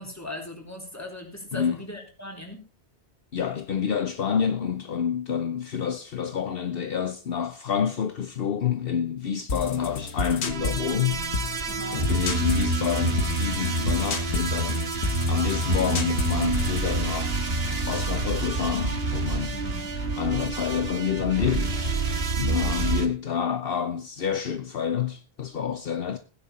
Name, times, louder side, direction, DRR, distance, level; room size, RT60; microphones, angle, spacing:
voice 1, 0.0-2.6 11.7-12.1 19.5-19.9 22.4-22.7, left 1 dB, 15° left, 3.7 m, -39 dB
voice 2, 3.3-11.6 11.9-14.9 15.3-17.4 17.9-19.6 20.2-22.1 22.4-26.2, left 8 dB, 65° left, 1.0 m, -28 dB
sound 1, 9.5-16.9, left 3 dB, 85° left, 1.6 m, -32 dB
sound 2, 10.4-23.1, right 3 dB, 70° right, 1.9 m, -27 dB
16.0 x 10.0 x 4.3 m
omnidirectional pair, 1.1 m